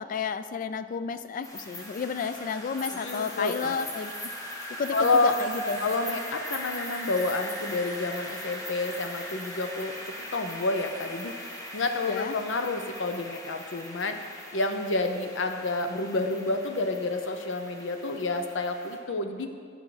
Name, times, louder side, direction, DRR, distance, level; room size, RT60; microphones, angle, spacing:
voice 1, 0.0-4.1 4.8-5.8 12.1-12.3, left 5 dB, 45° left, 12 dB, 0.3 m, -32 dB
sound 1, 1.4-19.0, left 1 dB, 20° left, 1.0 m, -40 dB
voice 2, 2.9-3.7 4.9-5.3 5.8-14.2 14.5-19.5, left 3 dB, 80° left, 6 dB, 0.7 m, -29 dB
8.3 x 6.2 x 4.9 m, 2.1 s
head